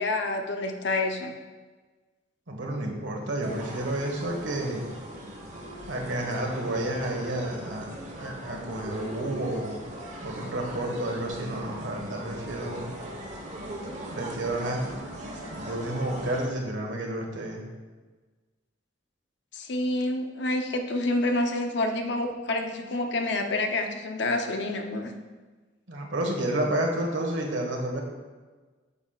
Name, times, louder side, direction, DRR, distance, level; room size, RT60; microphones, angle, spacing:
voice 1, 0.0-1.3 19.5-25.1, left 2 dB, 60° left, 5 dB, 0.7 m, -28 dB
voice 2, 2.5-4.9 5.9-9.7 10.2-12.9 14.1-14.8 15.5-17.6 25.9-28.0, right 1 dB, 75° right, 1 dB, 1.3 m, -30 dB
sound 1, 3.4-16.5, right 1 dB, 40° right, 1.1 m, -40 dB
8.3 x 7.2 x 2.4 m, 1.3 s
head